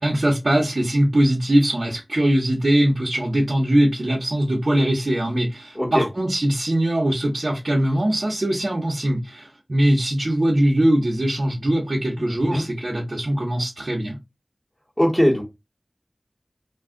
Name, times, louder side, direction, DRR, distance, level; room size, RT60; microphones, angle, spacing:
voice 1, 0.0-14.2, right 1 dB, 60° right, 0.8 m, -21 dB
voice 2, 5.7-6.0 12.2-12.6 15.0-15.4, equal, 20° left, 1.4 m, -21 dB
2.5 x 2.3 x 3.5 m
wide cardioid pair, 50°, 0 cm